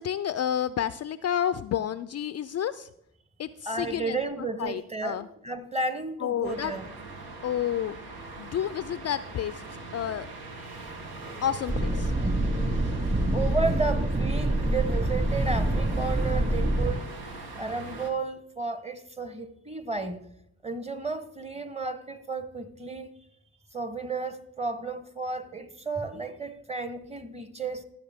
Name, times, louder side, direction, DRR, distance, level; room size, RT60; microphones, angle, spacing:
voice 1, 0.0-2.9 3.4-4.2 4.6-5.3 6.2-6.7 7.4-8.0 8.4-9.6 9.9-10.3 11.4-12.1, left 9 dB, 45° left, 0.4 m, -30 dB
voice 2, 3.6-6.9 13.0-17.1 17.6-20.2 20.6-23.1 23.7-27.8, right 3 dB, 15° right, 1.2 m, -33 dB
sound 1, 6.4-18.1, right 3 dB, 75° right, 1.5 m, -41 dB
sound 2, 11.7-16.9, right 1 dB, 35° right, 4.2 m, -26 dB
14.5 x 6.5 x 3.6 m
hypercardioid pair, 45°, 38 cm